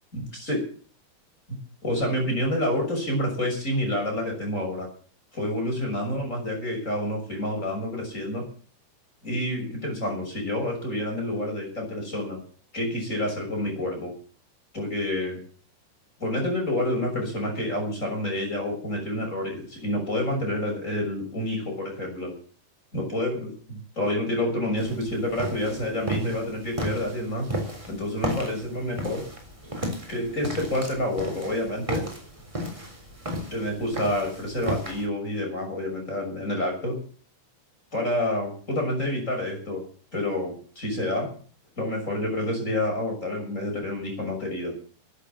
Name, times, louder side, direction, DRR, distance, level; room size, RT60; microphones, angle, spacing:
voice 1, 0.1-0.6 1.8-4.9 5.3-8.5 9.2-12.4 12.7-14.1 14.7-15.4 16.2-22.3 22.9-27.5 27.9-29.2 30.1-32.0 33.5-37.0 37.9-39.8 40.1-41.3 41.8-44.8, left 1 dB, 15° left, 1 dB, 6.3 m, -28 dB
sound 1, 24.8-35.1, right 1 dB, 10° right, 3.0 m, -34 dB
13.5 x 10.0 x 8.9 m, 0.43 s
omnidirectional pair, 5.4 m